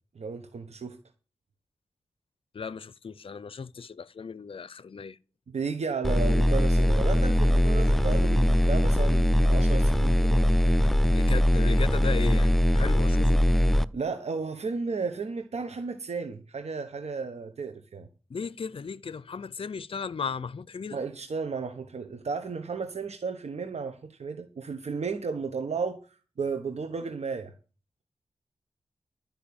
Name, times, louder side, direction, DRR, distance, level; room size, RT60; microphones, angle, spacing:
voice 1, 0.1-1.0 5.5-10.7 13.9-18.1 20.9-26.0 26.4-27.5, right 4 dB, 75° right, 1.3 m, -33 dB
voice 2, 2.5-5.2 11.1-13.5 18.3-21.0, left 5 dB, 55° left, 0.6 m, -36 dB
sound 1, 6.0-13.8, left 1 dB, ahead, 0.6 m, -21 dB
12.5 x 5.5 x 8.7 m
cardioid pair, 60°, 11 cm